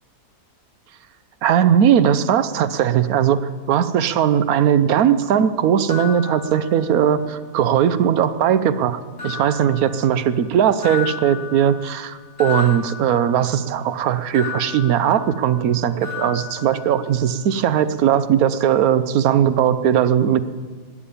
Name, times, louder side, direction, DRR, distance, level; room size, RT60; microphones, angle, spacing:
voice 1, 1.4-3.4 3.7-20.4, right 9 dB, 65° right, 13 dB, 1.2 m, -18 dB
sound 1, 5.9-7.2 7.6-8.3 9.2-10.5 10.8-13.7 14.3-15.7 16.0-17.4, left 7 dB, 35° left, 5.4 m, -34 dB
20.0 x 7.4 x 8.5 m, 1.5 s
omnidirectional pair, 1.7 m